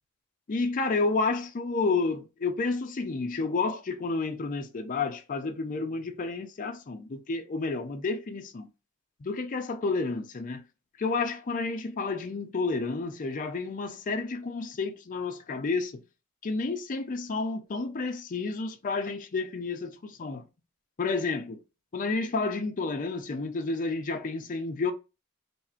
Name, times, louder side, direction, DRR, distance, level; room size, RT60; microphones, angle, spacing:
voice 1, 0.5-8.7 9.2-10.6 11.0-16.0 16.4-20.4 21.0-21.6 21.9-24.9, left 3 dB, 40° left, 0.5 m, -30 dB
3.4 x 2.4 x 4.3 m
head